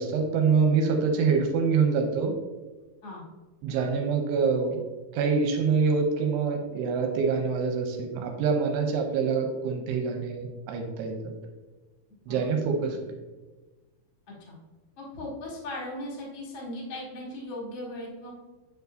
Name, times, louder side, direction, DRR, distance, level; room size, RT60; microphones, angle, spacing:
voice 1, 0.0-2.3 3.6-4.8 5.1-11.3 12.3-13.1, right 5 dB, 85° right, 3 dB, 2.6 m, -25 dB
voice 2, 12.1-12.6 12.9-13.0 14.3-14.6 15.0-18.4, left 1 dB, 45° left, -3 dB, 1.6 m, -38 dB
9.3 x 4.9 x 2.6 m, 1.2 s
omnidirectional pair, 4.9 m